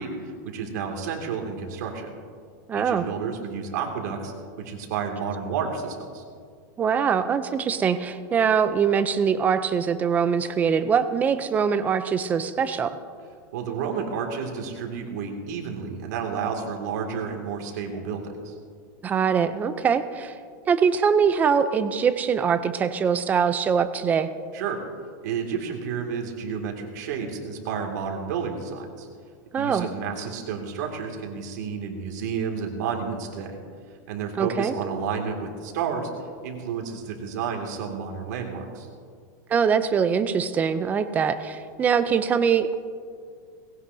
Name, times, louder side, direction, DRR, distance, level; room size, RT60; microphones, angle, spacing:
voice 1, 0.0-2.1 2.7-6.2 13.5-18.5 24.5-24.8 25.2-29.1 29.6-33.6 34.1-36.1 36.4-38.9, right 6 dB, 60° right, 2 dB, 2.3 m, -31 dB
voice 2, 2.7-3.1 6.8-13.0 19.0-20.3 20.7-24.3 29.5-29.9 34.4-34.7 39.5-42.7, right 6 dB, 15° right, 11 dB, 0.5 m, -23 dB
19.0 x 17.0 x 2.7 m, 2.1 s
supercardioid pair, 165°, 10 cm